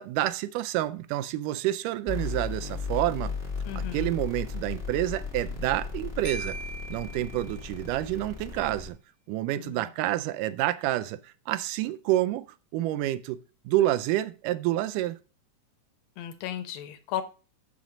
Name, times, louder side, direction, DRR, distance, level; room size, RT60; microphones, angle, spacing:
voice 1, 0.0-3.3 3.8-6.6 6.9-9.0 9.3-12.5 12.7-13.4 13.7-15.2, right 14 dB, 80° right, 2.0 m, -28 dB
sound 1, 2.1-8.9, left 5 dB, 35° left, 0.9 m, -35 dB
voice 2, 3.6-4.2 9.6-9.9 16.2-17.2, left 10 dB, 90° left, 2.7 m, -35 dB
Marimba xylophone, 6.3-8.0, right 2 dB, 75° left, 2.4 m, -41 dB
7.2 x 6.2 x 5.1 m
omnidirectional pair, 3.9 m